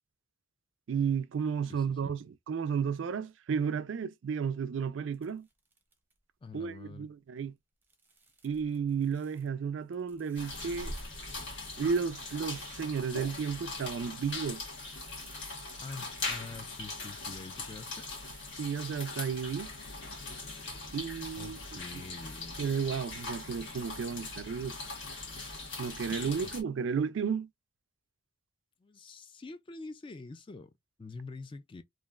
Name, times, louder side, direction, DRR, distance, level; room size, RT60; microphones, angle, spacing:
voice 1, 0.9-5.5 6.5-7.6 8.4-11.0 11.8-14.6 18.6-19.7 20.9-21.6 21.9-22.0 22.6-24.8 25.8-27.5, right 6 dB, 65° right, 0.4 m, -33 dB
voice 2, 1.7-2.1 6.4-7.1 15.8-18.0 21.4-22.6 28.8-30.7 31.0-31.8, left 3 dB, 25° left, 0.3 m, -46 dB
sound 1, 5.1-6.2 7.8-9.5 9.8-18.5, right 1 dB, 10° right, 0.6 m, -53 dB
sound 2, 10.3-26.6, left 3 dB, 60° left, 1.3 m, -41 dB
3.1 x 2.5 x 2.3 m
head